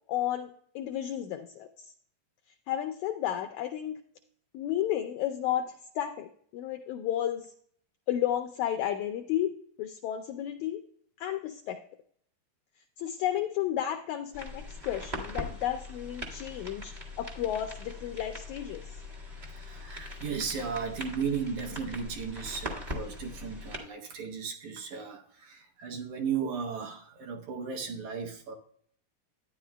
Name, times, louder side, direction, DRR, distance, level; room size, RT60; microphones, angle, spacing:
voice 1, 0.1-1.9 2.7-4.0 4.5-7.5 8.1-10.8 11.2-11.8 13.0-19.0, left 11 dB, 85° left, 1.6 m, -32 dB
sound 1, 14.3-23.8, left 1 dB, 50° right, 0.4 m, -41 dB
voice 2, 19.4-28.6, right 6 dB, 70° right, 2.0 m, -35 dB
12.0 x 9.8 x 2.2 m
omnidirectional pair, 3.9 m